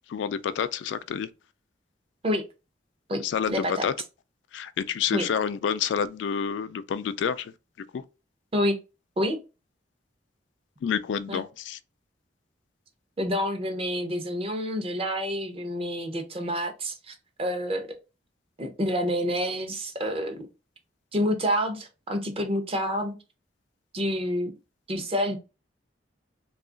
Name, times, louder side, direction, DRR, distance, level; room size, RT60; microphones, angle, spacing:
voice 1, 0.1-1.3 3.1-3.9 4.5-7.5 7.9-8.0 10.8-11.8, left 7 dB, 75° left, 0.3 m, -28 dB
voice 2, 3.1-3.9 5.1-5.3 8.5-8.8 9.2-9.4 11.3-11.4 13.2-17.9 18.6-20.4 21.1-23.1 23.9-24.5 24.9-25.4, equal, 30° right, 0.6 m, -28 dB
2.8 x 2.4 x 3.7 m
head